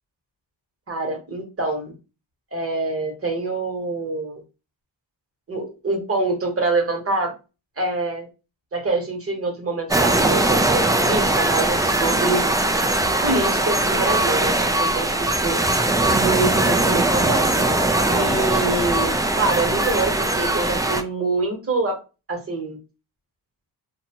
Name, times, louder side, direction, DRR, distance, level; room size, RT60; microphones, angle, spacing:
voice 1, 0.9-1.9 2.5-4.4 5.5-7.3 7.8-8.3 8.7-12.4 13.2-15.1 15.4-15.6 16.1-17.7 18.1-22.0 22.3-22.8, right 3 dB, 30° right, 2 dB, 1.1 m, -25 dB
sound 1, 9.9-21.0, right 2 dB, 10° right, 0.3 m, -20 dB
2.7 x 2.2 x 2.8 m, 0.30 s
cardioid pair, 75°, 43 cm